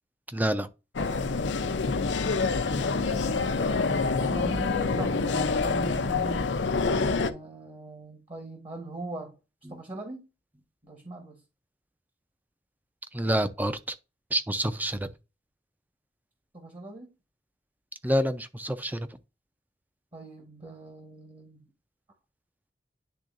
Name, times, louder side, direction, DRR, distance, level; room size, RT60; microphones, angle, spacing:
voice 1, 0.3-0.7 9.7-9.8 13.1-13.8 14.3-15.0 18.0-19.1, equal, 10° right, 0.5 m, -27 dB
sound 1, 1.0-7.3, left 4 dB, 85° left, 0.6 m, -26 dB
voice 2, 2.5-6.5 7.2-9.4 9.7-10.2 10.8-11.4 16.5-17.1 20.1-21.7, right 2 dB, 30° right, 1.3 m, -40 dB
10.0 x 3.7 x 2.6 m
head